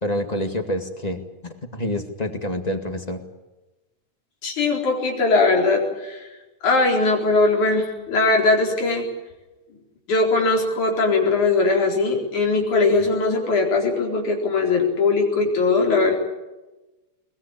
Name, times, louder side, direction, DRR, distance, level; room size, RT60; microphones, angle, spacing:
voice 1, 0.0-3.2, left 1 dB, 15° left, 6 dB, 1.5 m, -27 dB
voice 2, 4.4-6.3 6.6-9.1 10.1-16.1, left 3 dB, 90° left, 1 dB, 5.7 m, -20 dB
22.0 x 21.0 x 8.5 m, 1.1 s
omnidirectional pair, 3.3 m